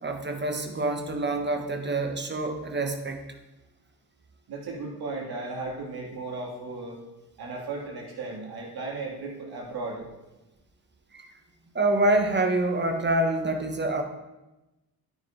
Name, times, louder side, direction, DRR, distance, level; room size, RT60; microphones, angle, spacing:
voice 1, 0.0-3.2 11.1-11.3 11.7-14.0, right 2 dB, 20° right, 4 dB, 1.4 m, -26 dB
voice 2, 4.5-7.0 7.4-10.1, right 3 dB, 50° right, -2 dB, 2.7 m, -35 dB
11.5 x 9.4 x 2.8 m, 1.0 s
figure-of-eight pair, 45°, 49 cm